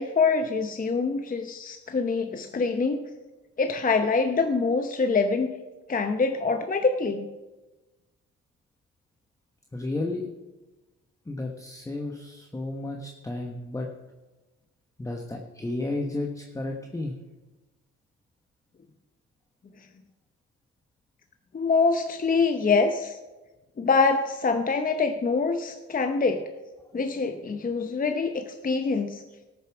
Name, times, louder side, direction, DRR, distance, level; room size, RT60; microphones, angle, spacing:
voice 1, 0.0-3.0 3.6-5.5 5.9-7.3 21.5-23.2 23.8-26.4 26.9-29.2, left 4 dB, 30° left, 6 dB, 0.8 m, -25 dB
voice 2, 9.7-10.3 11.3-13.9 15.0-17.1, left 2 dB, 10° left, 2 dB, 1.1 m, -32 dB
13.0 x 7.0 x 6.0 m, 1.1 s
cardioid pair, 90°, 30 cm